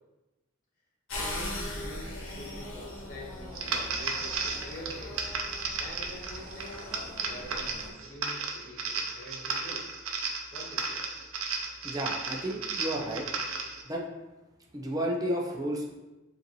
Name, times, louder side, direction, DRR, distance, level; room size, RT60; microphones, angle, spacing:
sound 1, 1.1-7.9, left 1 dB, 85° left, 0.9 m, -40 dB
voice 1, 1.1-5.3 5.7-6.8 7.2-9.9 10.5-11.0, equal, 40° left, -5 dB, 1.3 m, -45 dB
sound 2, 3.5-13.8, right 4 dB, 90° right, 0.6 m, -34 dB
voice 2, 11.8-13.3 13.8-14.0 14.7-16.0, right 1 dB, 20° right, -1 dB, 0.6 m, -32 dB
5.1 x 2.6 x 3.1 m, 1.0 s
head